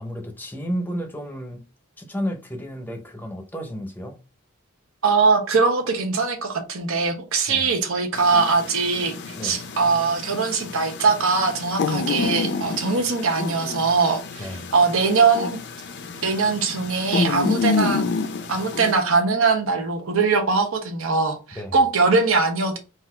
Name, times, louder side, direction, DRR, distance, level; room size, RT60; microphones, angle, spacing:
voice 1, 0.0-1.6 2.0-4.2 7.5-7.7 9.4-9.7 14.4-14.7 21.6-21.7, equal, 10° left, 0.7 m, -32 dB
voice 2, 5.0-15.6 16.2-18.0 18.5-22.8, right 4 dB, 70° right, 1.0 m, -21 dB
sound 1, 8.1-18.9, left 4 dB, 55° left, 0.6 m, -29 dB
4.1 x 2.5 x 4.3 m
head